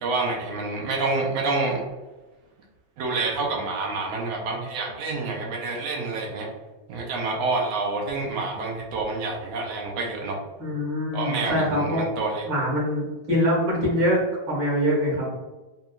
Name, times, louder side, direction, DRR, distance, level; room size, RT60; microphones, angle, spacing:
voice 1, 0.0-1.8 3.0-6.5 6.9-10.4 11.1-12.4, right 3 dB, 75° right, 0 dB, 1.7 m, -28 dB
voice 2, 10.6-12.0 12.4-15.3, equal, 50° right, -3 dB, 1.6 m, -24 dB
6.6 x 2.3 x 2.3 m, 1.2 s
omnidirectional pair, 3.3 m